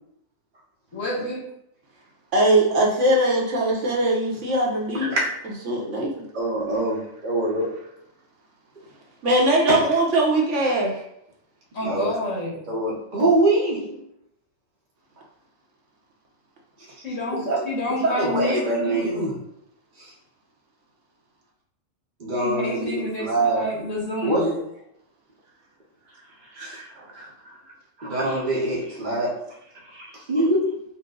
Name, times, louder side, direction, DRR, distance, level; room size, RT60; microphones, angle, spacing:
voice 1, 0.9-1.4 11.7-12.6 17.0-19.2 22.4-24.5, left 1 dB, 70° left, -6 dB, 1.7 m, -29 dB
voice 2, 2.3-5.2 5.7-6.1 9.2-10.9, right 1 dB, 65° right, -2 dB, 1.2 m, -20 dB
voice 3, 4.9-5.3 6.3-7.8 9.7-9.8 11.8-12.2 12.7-14.0 17.3-19.4 20.0-20.1 22.2-23.7 24.2-24.6 26.5-27.3 28.0-29.4 29.9-30.8, right 2 dB, 45° right, -4 dB, 0.9 m, -24 dB
4.4 x 2.2 x 3.7 m, 0.75 s
omnidirectional pair, 1.4 m